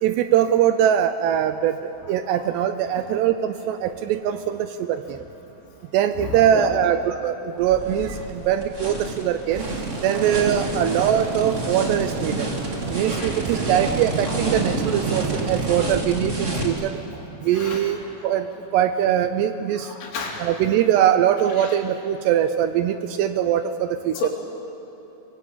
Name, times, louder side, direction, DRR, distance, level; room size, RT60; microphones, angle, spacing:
voice 1, 0.0-5.2 5.9-9.7 10.0-12.5 12.9-17.0 17.4-18.0 18.2-19.9 20.4-24.3, right 10 dB, 80° right, 9 dB, 2.6 m, -22 dB
sound 1, 7.6-16.7, right 1 dB, 20° right, 2.0 m, -29 dB
sound 2, 9.5-16.0, right 5 dB, 60° right, 2.3 m, -31 dB
voice 2, 20.0-20.5 24.2-24.3, left 6 dB, 85° left, -1 dB, 5.7 m, -30 dB
23.5 x 22.5 x 8.5 m, 2.8 s
omnidirectional pair, 5.4 m